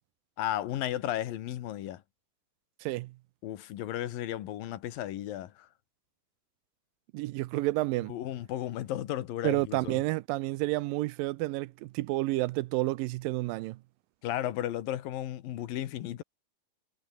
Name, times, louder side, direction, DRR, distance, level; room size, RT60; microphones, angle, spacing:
voice 1, 0.4-2.0 3.4-5.7 8.1-10.0 14.2-16.2, left 12 dB, 80° left, 3.1 m, -34 dB
voice 2, 2.8-3.1 7.1-8.2 9.4-13.8, right 19 dB, 85° right, 2.3 m, -30 dB
omnidirectional pair, 4.0 m